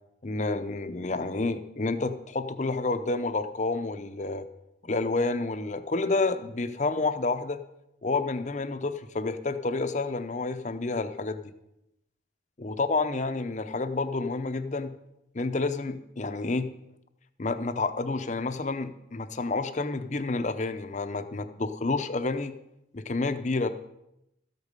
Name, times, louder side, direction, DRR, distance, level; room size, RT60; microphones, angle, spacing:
voice 1, 0.2-4.5 4.8-7.6 8.0-11.5 12.6-14.9 15.3-16.7 17.4-22.6 22.9-23.7, left 3 dB, 40° left, 10 dB, 0.7 m, -29 dB
13.5 x 8.1 x 5.4 m, 0.84 s
head